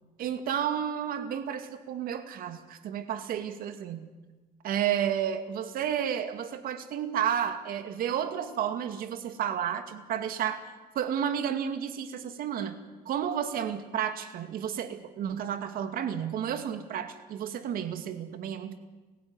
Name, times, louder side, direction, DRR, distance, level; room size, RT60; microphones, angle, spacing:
voice 1, 0.2-4.1 4.6-12.8 13.1-18.8, right 9 dB, 75° right, 9 dB, 2.3 m, -31 dB
29.5 x 16.0 x 9.8 m, 1.2 s
cardioid pair, 120°, 15 cm